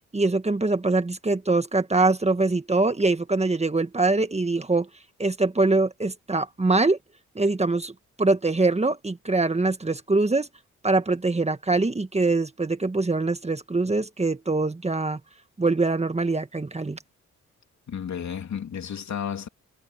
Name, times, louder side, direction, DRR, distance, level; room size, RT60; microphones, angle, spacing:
voice 1, 0.1-4.9 5.2-7.0 7.3-10.5 10.8-15.2 15.6-17.0, right 3 dB, 20° right, 1.6 m, -23 dB
voice 2, 17.9-19.5, left 8 dB, 65° left, 3.2 m, -32 dB
cardioid pair, 75°, 30 cm